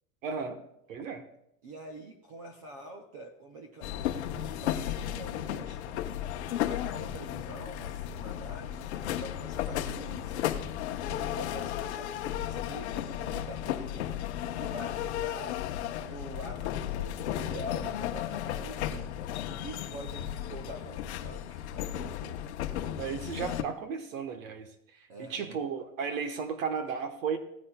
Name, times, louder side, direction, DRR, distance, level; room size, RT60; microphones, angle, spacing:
voice 1, 0.2-0.6 0.9-1.2 23.0-27.4, right 6 dB, 65° right, 7 dB, 1.3 m, -34 dB
voice 2, 1.6-5.8 6.6-10.5 11.1-14.1 14.4-15.6 16.0-22.5 25.1-25.6, right 1 dB, 25° right, 4 dB, 0.5 m, -46 dB
sound 1, 3.8-23.6, left 11 dB, 50° left, 0.8 m, -34 dB
17.0 x 9.9 x 2.3 m, 0.78 s
supercardioid pair, 180°, 43 cm